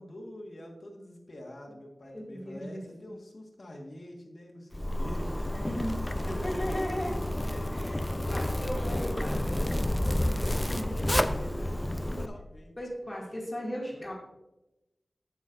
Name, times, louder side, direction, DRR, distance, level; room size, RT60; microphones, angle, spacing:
voice 1, 0.0-6.8 7.3-9.2 10.0-12.8 13.9-14.1, left 1 dB, 55° left, 0 dB, 1.6 m, -45 dB
voice 2, 2.0-2.8 5.5-7.1 7.7-9.4 10.7-11.1 12.8-14.1, equal, 30° left, -4 dB, 2.3 m, -37 dB
Zipper (clothing), 4.7-12.3, left 1 dB, 15° left, 0.5 m, -30 dB
9.0 x 8.1 x 2.6 m, 0.99 s
wide cardioid pair, 65°, 0 cm